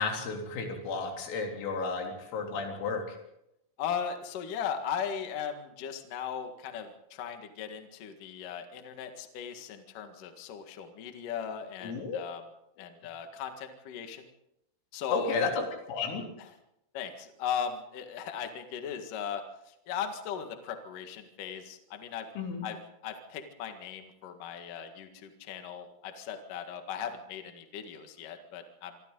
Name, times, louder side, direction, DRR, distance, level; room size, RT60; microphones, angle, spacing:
voice 1, 0.0-3.2 11.8-12.2 12.8-12.9 15.1-16.2 22.4-22.6, left 4 dB, 85° left, 1 dB, 6.1 m, -32 dB
voice 2, 3.8-12.4 12.8-14.3 14.9-15.5 16.4-16.5 16.9-22.3 22.6-22.8 23.0-28.9, left 7 dB, 55° left, 6 dB, 2.7 m, -38 dB
25.5 x 25.5 x 3.9 m, 0.82 s
omnidirectional pair, 5.8 m